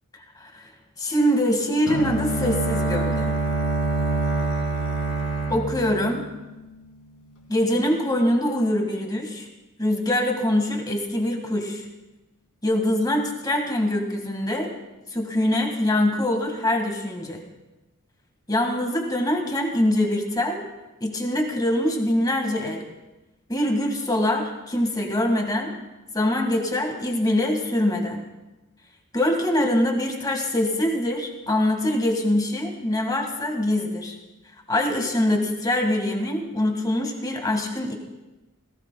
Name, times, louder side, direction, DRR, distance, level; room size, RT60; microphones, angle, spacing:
voice 1, 1.0-3.3 5.5-6.2 7.5-9.5 9.8-11.8 12.6-14.7 15.1-17.4 18.5-20.6 21.0-22.8 23.5-25.7 26.1-28.2 29.1-34.1 34.7-37.9, left 1 dB, 20° left, 3 dB, 1.7 m, -24 dB
Bowed string instrument, 1.9-6.8, right 3 dB, 80° left, 2.3 m, -26 dB
18.0 x 17.0 x 2.3 m, 1.1 s
head